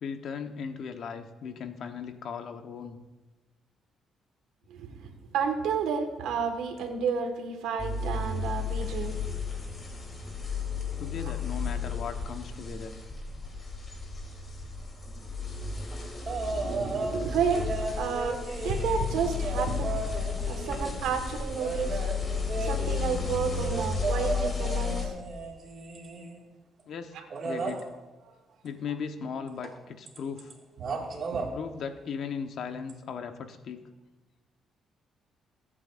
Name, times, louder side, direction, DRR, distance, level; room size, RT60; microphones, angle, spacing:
voice 1, 0.0-3.0 11.0-13.0 26.9-27.1 27.4-27.9 28.6-30.5 31.5-33.9, left 6 dB, 70° left, 7 dB, 1.1 m, -37 dB
voice 2, 4.7-9.2 16.4-20.0 20.5-22.0 22.6-25.1 27.1-27.2 30.9-31.4, right 6 dB, 90° right, 5 dB, 1.6 m, -31 dB
sound 1, 7.8-25.1, left 5 dB, 35° left, 3.2 m, -33 dB
sound 2, 16.3-17.2 17.5-21.1 21.6-26.4 27.3-27.8 29.6-29.8 30.1-30.5 30.8-31.5 32.9-33.0, right 4 dB, 50° right, 2.1 m, -35 dB
22.5 x 8.8 x 2.6 m, 1.2 s
cardioid pair, 90°, 0 cm